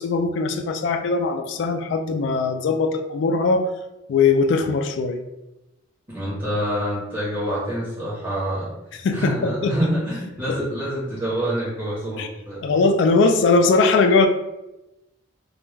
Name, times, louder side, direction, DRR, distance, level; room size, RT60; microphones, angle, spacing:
voice 1, 0.0-3.7 4.1-5.2 9.0-9.7 10.5-10.6 12.2-12.3 12.6-14.3, left 4 dB, 65° left, 7 dB, 0.3 m, -20 dB
voice 2, 6.1-8.7 9.1-12.6, equal, 25° right, -8 dB, 0.8 m, -26 dB
2.3 x 2.1 x 3.2 m, 0.94 s
head